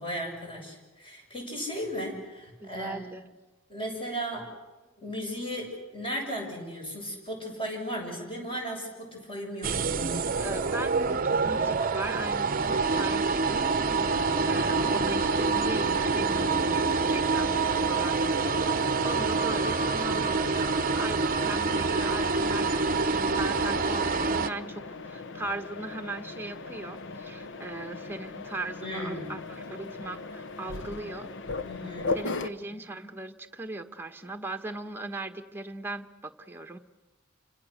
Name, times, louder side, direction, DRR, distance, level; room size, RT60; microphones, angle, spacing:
voice 1, 0.0-3.0 3.7-4.5 5.0-9.9 28.8-29.3 31.6-32.1, equal, 25° left, 1 dB, 7.3 m, -35 dB
voice 2, 2.6-3.2 10.4-13.7 14.0-31.3 32.1-36.8, right 2 dB, 10° right, 6 dB, 1.4 m, -39 dB
sound 1, 9.6-24.5, right 4 dB, 45° right, 0.8 m, -26 dB
Mechanisms, 14.0-32.5, left 3 dB, 60° left, 1.1 m, -39 dB
28.5 x 25.0 x 6.6 m, 1.2 s
head